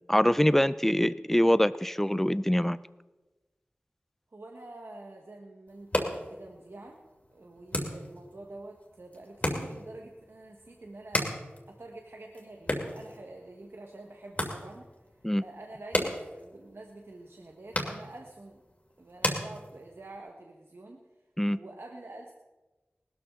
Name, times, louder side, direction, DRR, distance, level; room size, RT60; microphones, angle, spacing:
voice 1, 0.1-2.8 15.2-15.4 21.4-21.6, equal, 5° left, 17 dB, 0.5 m, -24 dB
voice 2, 4.3-7.0 7.3-14.9 15.4-18.6 19.0-21.1 21.5-22.3, right 2 dB, 70° right, 1 dB, 1.2 m, -47 dB
sound 1, 5.7-20.2, left 1 dB, 35° left, 2.6 m, -37 dB
19.0 x 13.0 x 3.7 m, 1.2 s
wide cardioid pair, 50°, 4 cm